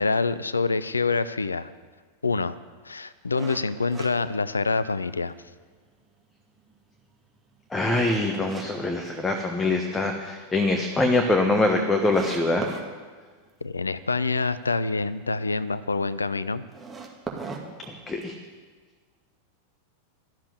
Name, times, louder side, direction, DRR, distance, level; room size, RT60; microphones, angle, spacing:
voice 1, 0.0-1.7 2.2-2.6 2.8-5.3 13.6-16.6, left 4 dB, 75° left, 16 dB, 0.5 m, -26 dB
sound 1, 3.4-5.1 5.5-5.6 6.1-8.7 9.0-9.8 10.1-10.2 10.6-10.7 10.9-11.0 11.6-11.7 12.1-12.9 16.6-18.5, right 4 dB, 15° right, 2.2 m, -39 dB
voice 2, 7.7-12.7 17.9-18.3, left 2 dB, 10° left, 3 dB, 1.3 m, -24 dB
13.0 x 7.5 x 9.8 m, 1.5 s
figure-of-eight pair, 90°, 0 cm